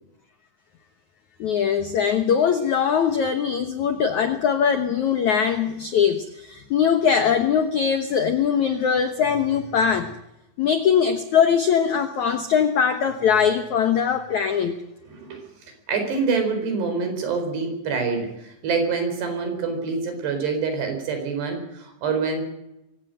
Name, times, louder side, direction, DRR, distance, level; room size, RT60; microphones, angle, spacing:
voice 1, 1.4-10.1 10.6-14.7, left 7 dB, 85° left, 8 dB, 1.6 m, -21 dB
voice 2, 15.1-15.5 15.9-22.4, right 4 dB, 60° right, 6 dB, 6.4 m, -26 dB
24.0 x 17.0 x 7.8 m, 0.89 s
omnidirectional pair, 5.4 m